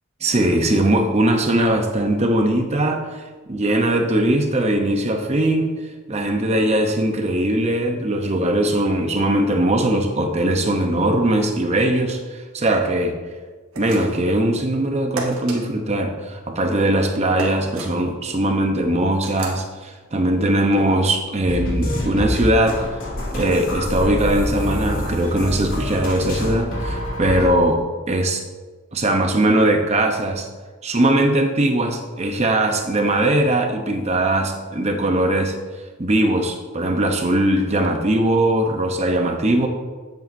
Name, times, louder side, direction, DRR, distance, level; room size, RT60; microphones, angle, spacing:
voice 1, 0.2-3.1 3.5-5.7 6.1-12.2 12.5-13.2 13.8-22.8 23.3-28.4 28.9-30.5 30.8-35.5 36.0-39.7, right 1 dB, 30° right, 4 dB, 0.7 m, -20 dB
sound 1, 13.7-14.3 15.2-15.6 17.4-17.9 19.2-19.6, right 3 dB, 70° right, 1.6 m, -31 dB
sound 2, 21.5-27.5, left 1 dB, 65° left, 2.4 m, -26 dB
10.5 x 7.9 x 2.6 m, 1.4 s
head